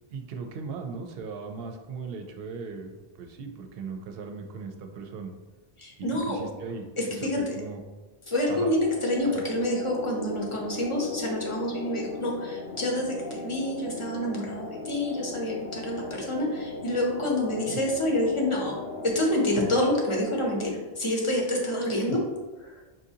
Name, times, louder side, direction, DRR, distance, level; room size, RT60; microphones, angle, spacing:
voice 1, 0.1-5.3 6.0-7.8 8.5-8.7 9.2-9.4 17.7-17.8 22.0-22.2, right 5 dB, 65° right, 4 dB, 0.7 m, -38 dB
voice 2, 5.8-6.5 7.0-7.5 8.3-18.8 19.1-22.2 22.6-22.8, left 1 dB, 30° left, -2 dB, 0.8 m, -28 dB
sound 1, 8.8-20.7, left 3 dB, 80° left, 0.9 m, -38 dB
5.7 x 2.6 x 2.7 m, 1.2 s
omnidirectional pair, 1.1 m